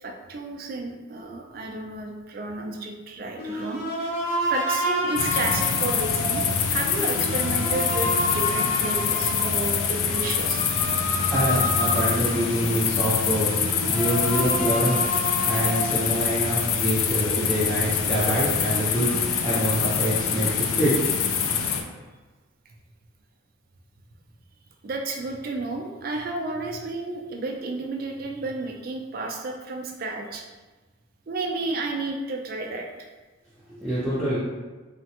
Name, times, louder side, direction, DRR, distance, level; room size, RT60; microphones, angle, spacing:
voice 1, 0.0-3.8 4.5-10.6 24.8-30.4 31.3-33.1, right 2 dB, 45° right, 2 dB, 0.3 m, -32 dB
sound 1, 3.4-12.6 13.1-13.2 13.5-16.2, equal, 50° left, 0.7 m, -30 dB
sound 2, 5.2-21.8, left 7 dB, 90° left, 0.3 m, -25 dB
voice 2, 11.3-13.6 13.8-15.0 15.5-21.0 33.8-34.4, right 1 dB, ahead, -14 dB, 0.7 m, -25 dB
3.2 x 2.1 x 2.8 m, 1.3 s
head